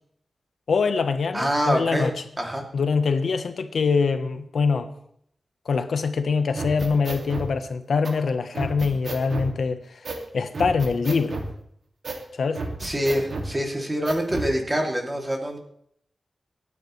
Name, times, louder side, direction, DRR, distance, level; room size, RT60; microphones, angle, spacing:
voice 1, 0.7-2.1 2.7-4.9 5.7-10.0 10.3-11.4 12.3-12.6, left 5 dB, 90° left, 1.0 m, -24 dB
voice 2, 1.3-2.1 2.4-2.6 12.8-15.6, equal, 20° right, 2.7 m, -25 dB
sound 1, 6.5-7.5 8.0-8.1 8.5-9.5 10.0-10.2 10.5-11.5 12.0-12.2 12.5-13.5 14.0-14.5, right 3 dB, 70° right, 2.3 m, -31 dB
26.5 x 9.6 x 3.2 m
wide cardioid pair, 100°, 0 cm